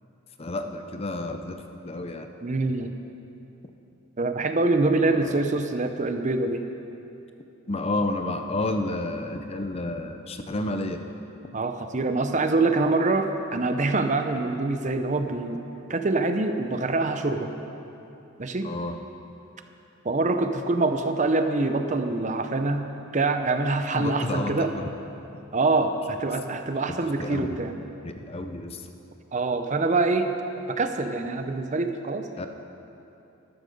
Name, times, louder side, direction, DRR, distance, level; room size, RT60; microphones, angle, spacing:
voice 1, 0.4-2.3 5.0-5.4 7.7-11.0 18.6-19.0 23.9-24.9 27.2-27.6 28.0-28.8 32.4-32.5, left 2 dB, 25° left, 6 dB, 0.6 m, -30 dB
voice 2, 2.4-2.9 4.2-6.6 11.5-15.6 15.9-17.5 18.4-18.7 20.0-22.9 23.1-24.7 25.5-27.7 29.3-30.3 30.7-32.5, right 3 dB, 35° right, 7 dB, 0.6 m, -25 dB
12.5 x 12.0 x 5.3 m, 2.9 s
head